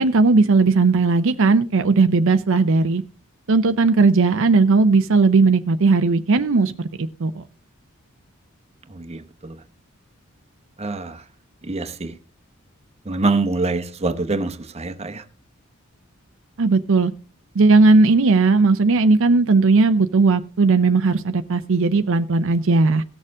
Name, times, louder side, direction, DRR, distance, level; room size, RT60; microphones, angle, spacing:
voice 1, 0.0-3.0 3.5-6.7 7.0-7.4 16.6-17.1 17.6-23.0, right 3 dB, 65° right, 0.6 m, -17 dB
voice 2, 9.0-9.5 10.8-11.2 11.7-12.1 13.1-15.2, right 3 dB, 30° right, 0.9 m, -25 dB
17.5 x 6.6 x 3.6 m
head